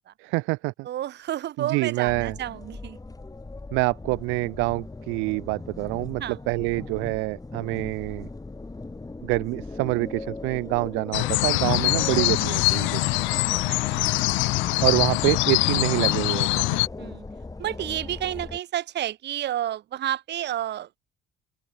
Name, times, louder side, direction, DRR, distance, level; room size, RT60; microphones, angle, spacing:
voice 1, 0.2-0.9 1.6-2.4 3.7-8.3 9.2-13.0 14.8-16.8, right 27 dB, 75° right, 0.6 m, -26 dB
voice 2, 0.8-3.0 6.2-6.4 12.1-12.4 13.7-14.2 17.0-17.2 17.6-20.9, right 12 dB, 60° right, 1.4 m, -31 dB
sound 1, 2.1-18.6, left 3 dB, 15° left, 2.0 m, -39 dB
sound 2, 11.1-16.9, left 22 dB, 75° left, 0.6 m, -23 dB
open air
hypercardioid pair, 55°, 20 cm